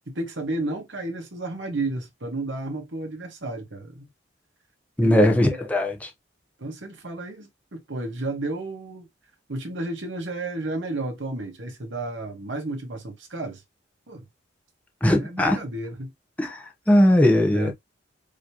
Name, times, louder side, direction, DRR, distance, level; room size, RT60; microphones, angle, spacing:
voice 1, 0.1-4.1 5.0-5.6 6.6-9.1 9.5-13.6 14.1-14.3 15.1-16.1 16.9-17.0 17.5-17.7, right 2 dB, 65° right, 1.5 m, -32 dB
voice 2, 5.0-6.1 15.0-15.6 16.4-16.6 16.9-17.7, left 1 dB, 5° left, 0.9 m, -19 dB
5.0 x 3.1 x 2.9 m
head